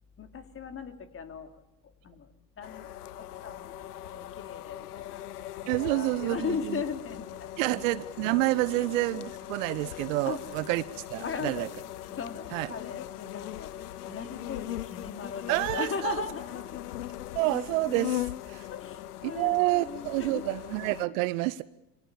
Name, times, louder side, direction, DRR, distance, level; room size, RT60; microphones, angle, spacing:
voice 1, 0.2-1.6 2.0-2.3 2.6-2.9 3.2-5.2 5.5-7.8 8.7-8.8 10.2-10.4 11.2-11.7 12.1-13.7 14.0-16.7 18.7-20.5, left 6 dB, 25° left, 3.1 m, -38 dB
sound 1, 2.6-21.1, left 13 dB, 70° left, 1.0 m, -40 dB
voice 2, 5.7-6.8 7.6-10.8 11.1-11.7 12.5-12.7 15.5-16.2 17.3-18.6 19.2-21.6, right 19 dB, 55° right, 1.0 m, -28 dB
28.0 x 24.5 x 7.2 m
figure-of-eight pair, 75°, 48 cm